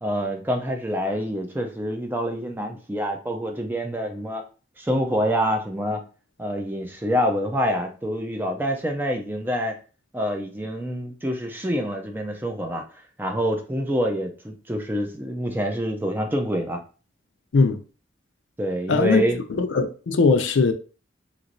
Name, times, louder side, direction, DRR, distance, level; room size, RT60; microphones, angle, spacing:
voice 1, 0.0-4.4 4.8-6.0 6.4-9.8 10.1-12.8 13.2-16.8 18.6-19.4, equal, 10° right, 0.4 m, -26 dB
voice 2, 18.9-20.7, left 4 dB, 80° left, 0.5 m, -20 dB
3.0 x 3.0 x 2.6 m
head